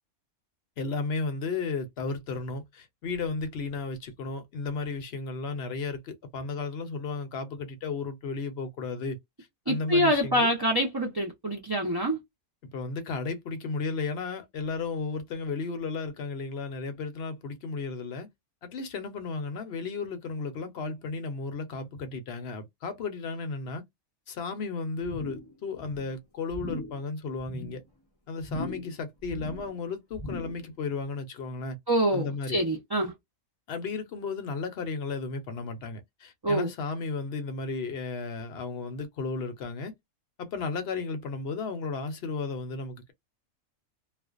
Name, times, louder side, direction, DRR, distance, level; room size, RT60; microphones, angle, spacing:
voice 1, 0.8-9.2 9.7-10.5 12.6-18.3 18.6-23.8 24.3-27.8 28.3-31.8 32.1-32.6 33.7-39.9 40.4-43.1, left 4 dB, 55° left, 0.8 m, -34 dB
voice 2, 9.7-12.2 31.9-33.1 36.4-36.7, equal, 35° right, 0.4 m, -25 dB
sound 1, 25.0-25.5 25.8-26.1 26.5-27.0 27.4-27.8 28.4-29.0 29.2-29.7 30.1-30.7 31.0-31.1, left 1 dB, 25° left, 0.5 m, -39 dB
2.4 x 2.1 x 2.4 m
omnidirectional pair, 1.5 m